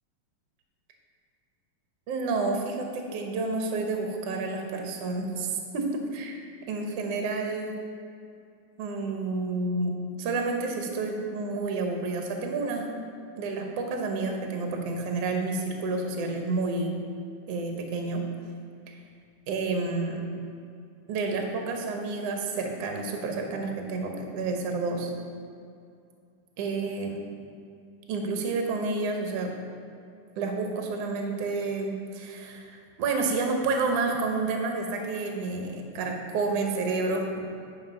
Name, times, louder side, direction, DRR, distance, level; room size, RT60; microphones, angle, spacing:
voice 1, 2.1-6.4 6.7-7.7 8.8-12.9 13.4-17.0 17.5-18.2 18.9-19.0 19.5-20.2 21.1-25.1 26.6-27.2 28.1-29.5 30.4-37.2, right 3 dB, 65° right, 2 dB, 1.7 m, -30 dB
10.5 x 4.3 x 5.6 m, 2.4 s
omnidirectional pair, 3.8 m